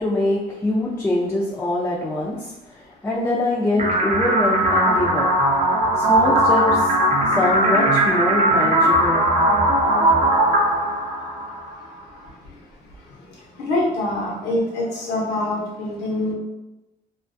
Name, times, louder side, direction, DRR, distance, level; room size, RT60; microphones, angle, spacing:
voice 1, 0.0-5.3 6.0-6.9 7.3-9.3, left 1 dB, 15° left, -5 dB, 0.3 m, -24 dB
sound 1, 3.8-11.8, right 1 dB, 40° right, 0.6 m, -19 dB
voice 2, 13.6-16.3, left 1 dB, 90° left, -3 dB, 0.8 m, -24 dB
2.3 x 2.2 x 2.5 m, 1.0 s
cardioid pair, 110°, 17 cm